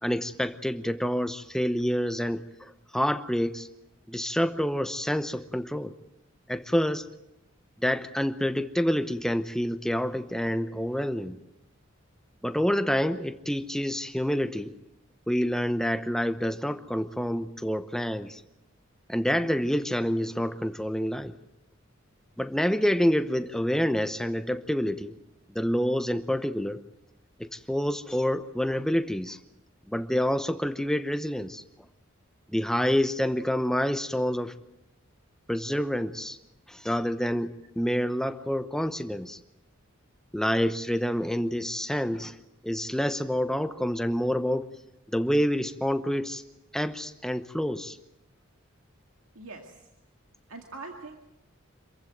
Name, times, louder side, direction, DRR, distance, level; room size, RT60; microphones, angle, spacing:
voice 1, 0.0-3.7 4.1-5.9 6.5-7.1 7.8-11.4 12.4-14.8 15.3-18.4 19.1-21.3 22.4-25.1 25.5-26.8 27.4-29.4 29.9-31.6 32.5-34.5 35.5-36.4 36.7-39.4 40.3-42.4 42.6-44.7 45.1-46.4 46.7-48.0, equal, 5° left, 10 dB, 0.8 m, -27 dB
voice 2, 49.3-49.8 50.5-51.2, right 3 dB, 85° right, 2 dB, 2.3 m, -42 dB
26.5 x 15.5 x 9.2 m, 0.93 s
head